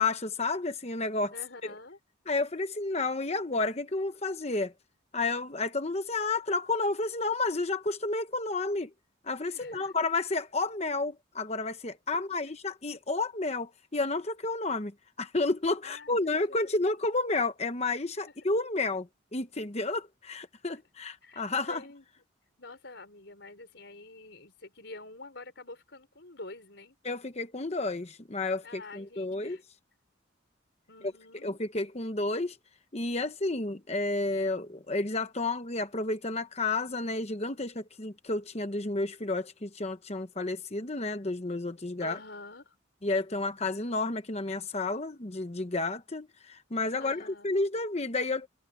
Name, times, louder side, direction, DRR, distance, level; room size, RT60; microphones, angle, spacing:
voice 1, 0.0-1.3 2.3-4.7 5.1-8.9 9.2-14.9 15.2-21.8 27.0-29.6 31.4-32.6 32.9-42.2 43.0-48.5, left 3 dB, 30° left, 1.0 m, -31 dB
voice 2, 1.3-2.0 9.5-10.0 12.4-12.5 15.8-17.0 18.3-18.4 21.2-22.1 22.6-27.0 28.6-29.6 30.9-31.5 42.0-42.8 47.0-47.5, left 3 dB, 60° left, 4.9 m, -47 dB
head